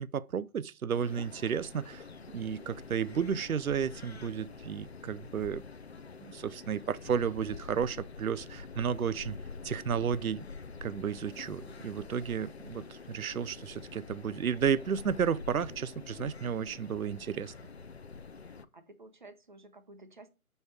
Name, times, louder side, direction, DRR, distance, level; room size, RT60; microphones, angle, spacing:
voice 1, 0.0-2.0 2.3-5.6 6.2-9.4 9.6-10.5 10.8-17.5, right 7 dB, 75° right, 0.6 m, -32 dB
sound 1, 0.9-18.7, left 4 dB, 50° left, 0.6 m, -47 dB
voice 2, 18.4-20.3, right 2 dB, 35° right, 0.8 m, -53 dB
6.3 x 5.5 x 4.6 m
figure-of-eight pair, 155°, 43 cm